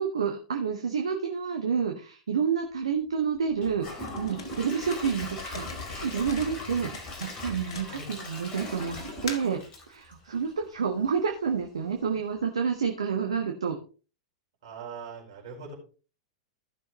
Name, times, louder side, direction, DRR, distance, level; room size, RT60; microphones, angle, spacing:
voice 1, 0.0-9.6 9.9-13.8, right 6 dB, 70° right, 3 dB, 1.3 m, -29 dB
Gurgling / Toilet flush / Trickle dribble, 3.6-10.6 11.0-11.1 11.6-11.7, left 1 dB, 30° left, 3.8 m, -40 dB
sound 1, 4.1-8.4 8.9-9.6, left 5 dB, 65° left, 1.8 m, -41 dB
voice 2, 14.6-15.7, right 5 dB, 55° right, -1 dB, 4.7 m, -41 dB
15.5 x 6.3 x 3.1 m, 0.36 s
figure-of-eight pair, 95°, 3 cm